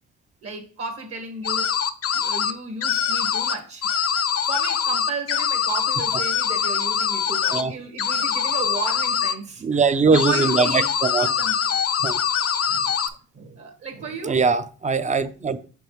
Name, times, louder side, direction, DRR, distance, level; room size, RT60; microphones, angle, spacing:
voice 1, 0.4-1.8 2.1-3.9 4.5-10.9 11.1-11.5 12.0-12.1 12.7-12.9 13.3-14.4, right 4 dB, 50° right, 1.2 m, -34 dB
sound 1, 1.4-2.5 2.8-3.5 3.8-7.6 8.0-9.3 10.1-13.1, left 8 dB, 50° left, 0.6 m, -23 dB
voice 2, 9.6-11.3 12.0-12.2 14.2-15.7, right 4 dB, 25° right, 0.6 m, -21 dB
6.3 x 5.3 x 3.1 m
cardioid pair, 90°, 30 cm